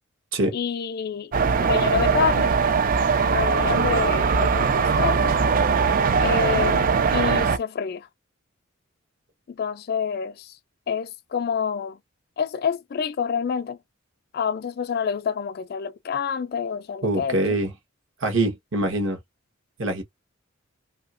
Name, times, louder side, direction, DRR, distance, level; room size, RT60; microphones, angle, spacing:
voice 1, 0.5-1.3 1.6-2.5 3.3-5.3 6.2-8.1 9.5-10.5 10.9-12.0 12.4-13.8 14.3-17.6, left 6 dB, 50° left, 0.3 m, -27 dB
sound 1, 1.3-7.6, right 5 dB, 40° right, 0.3 m, -21 dB
voice 2, 17.0-17.7 18.2-19.2 19.8-20.0, right 2 dB, 70° right, 1.2 m, -24 dB
2.9 x 2.7 x 2.5 m
head